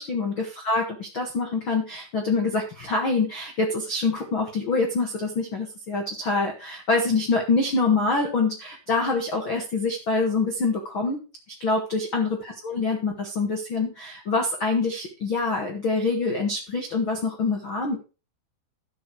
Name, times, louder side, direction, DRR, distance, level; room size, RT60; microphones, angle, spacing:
voice 1, 0.0-11.2 11.6-18.0, left 3 dB, 65° left, 1 dB, 1.2 m, -25 dB
13.0 x 6.4 x 4.8 m, 0.32 s
omnidirectional pair, 5.4 m